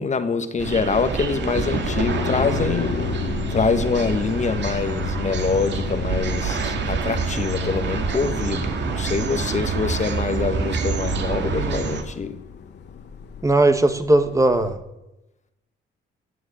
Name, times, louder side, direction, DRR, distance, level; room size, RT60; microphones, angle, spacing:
voice 1, 0.0-2.9 3.5-12.4, left 5 dB, 35° left, 9 dB, 1.4 m, -25 dB
sound 1, 0.6-12.0, right 5 dB, 65° right, 2.2 m, -27 dB
sound 2, 1.5-14.8, left 6 dB, 60° left, 1.5 m, -33 dB
voice 2, 13.4-14.8, right 2 dB, 15° right, 9 dB, 1.5 m, -18 dB
17.0 x 7.6 x 8.5 m, 0.94 s
cardioid pair, 90°, 20 cm